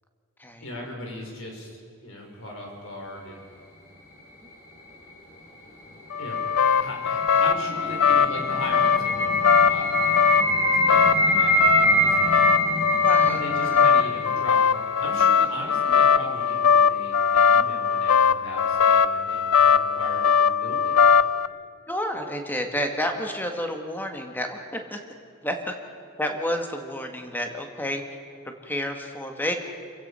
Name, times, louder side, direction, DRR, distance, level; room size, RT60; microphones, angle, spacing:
voice 1, 0.6-3.4 6.2-6.4 6.8-12.2 13.2-21.0, left 1 dB, 60° left, 0 dB, 5.3 m, -38 dB
sound 1, 5.9-14.9, equal, 40° left, 6.0 m, -25 dB
sound 2, 6.1-21.5, left 6 dB, 75° left, 0.5 m, -21 dB
voice 2, 13.0-13.9 21.9-25.0 25.4-25.7 26.2-28.0 28.4-29.5, equal, 10° left, 4 dB, 1.8 m, -30 dB
28.5 x 16.0 x 5.7 m, 2.6 s
head